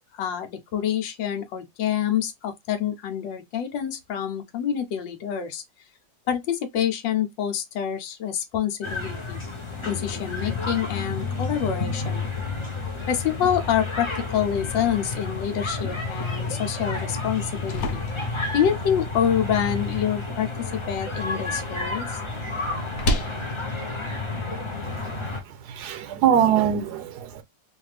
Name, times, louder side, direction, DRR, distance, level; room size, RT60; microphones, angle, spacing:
voice 1, 0.1-5.6 6.3-9.4 9.8-12.2 13.1-18.0 18.5-20.5 20.8-22.2, left 9 dB, 90° left, 1.5 m, -27 dB
sound 1, 8.8-25.4, left 3 dB, 30° left, 0.5 m, -30 dB
sound 2, 17.3-25.2, left 1 dB, 70° left, 1.2 m, -35 dB
voice 2, 24.9-27.4, right 9 dB, 70° right, 1.1 m, -24 dB
3.2 x 2.5 x 3.2 m
omnidirectional pair, 1.9 m